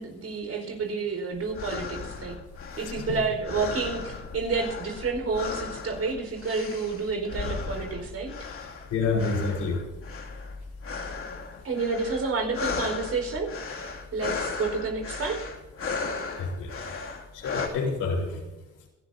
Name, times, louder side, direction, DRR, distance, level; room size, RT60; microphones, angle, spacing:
voice 1, 0.0-2.4 2.8-8.3 11.6-13.5 14.1-15.4, right 4 dB, 55° right, 3 dB, 4.8 m, -30 dB
sound 1, 1.3-17.7, left 4 dB, 45° left, 2.6 m, -36 dB
voice 2, 2.8-3.2 8.9-9.8 16.4-16.9 17.3-18.4, left 4 dB, 80° left, 0 dB, 4.2 m, -28 dB
27.0 x 12.0 x 2.8 m, 1.1 s
cardioid pair, 90°, 30 cm